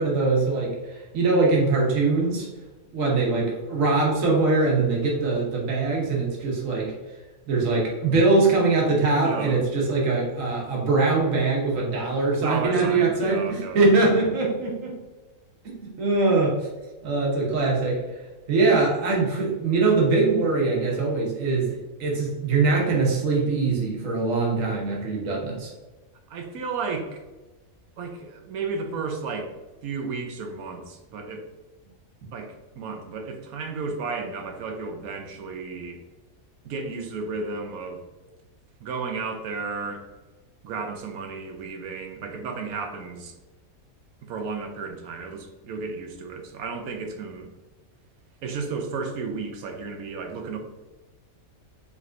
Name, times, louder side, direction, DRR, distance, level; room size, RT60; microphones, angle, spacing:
voice 1, 0.0-2.5 2.9-6.9 7.5-15.0 15.6-16.6 17.0-18.0 18.5-25.7, right 3 dB, 70° right, -2 dB, 1.5 m, -22 dB
voice 2, 9.2-9.6 12.4-13.8 26.3-27.2 28.0-29.5 29.8-31.4 32.3-36.0 36.6-38.0 38.8-40.1 40.6-43.3 44.2-47.5 48.4-50.6, right 4 dB, 90° right, 4 dB, 1.2 m, -33 dB
5.2 x 3.3 x 2.5 m, 1.1 s
omnidirectional pair, 1.5 m